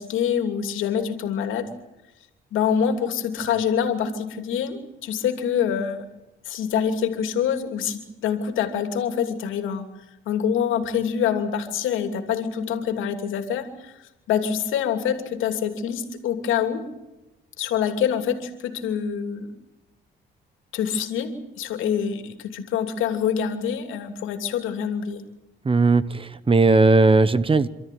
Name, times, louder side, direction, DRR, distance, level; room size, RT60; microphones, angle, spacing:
voice 1, 0.0-1.7 2.5-6.1 6.4-9.8 10.3-16.8 17.6-19.5 20.7-25.2, left 8 dB, 85° left, 7 dB, 2.9 m, -25 dB
voice 2, 25.6-27.7, right 3 dB, 25° right, 16 dB, 1.1 m, -17 dB
28.0 x 13.5 x 9.3 m, 0.97 s
cardioid pair, 90°, 20 cm